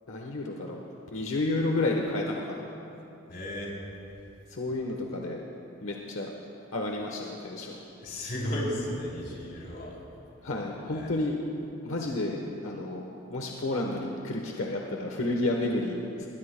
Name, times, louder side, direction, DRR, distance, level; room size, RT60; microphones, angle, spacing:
voice 1, 0.1-0.8 1.1-2.6 4.5-5.4 5.8-6.3 6.7-7.8 10.4-11.4 11.8-12.4 12.6-13.0 13.3-16.3, left 2 dB, 85° left, 0 dB, 1.1 m, -31 dB
voice 2, 3.3-3.7 8.0-10.0 10.9-11.1, left 1 dB, 50° left, -3 dB, 3.2 m, -34 dB
20.5 x 20.0 x 2.2 m, 2.9 s
head